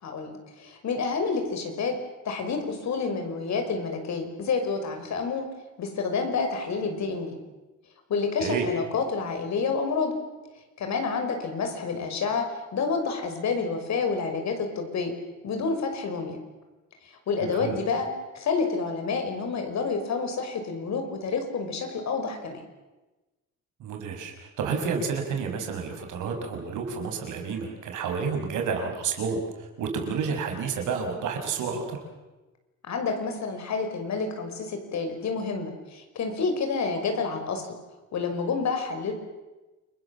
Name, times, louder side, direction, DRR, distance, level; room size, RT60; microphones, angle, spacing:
voice 1, 0.0-1.9 2.2-5.5 5.8-7.4 8.1-10.1 10.8-15.1 15.4-16.4 17.3-18.1 18.3-22.6 32.9-37.8 38.1-39.1, left 4 dB, 65° left, 5 dB, 6.0 m, -29 dB
voice 2, 17.4-17.8 23.8-32.0, right 5 dB, 80° right, 3 dB, 6.1 m, -30 dB
29.0 x 21.5 x 7.4 m, 1.1 s
cardioid pair, 90°, 30 cm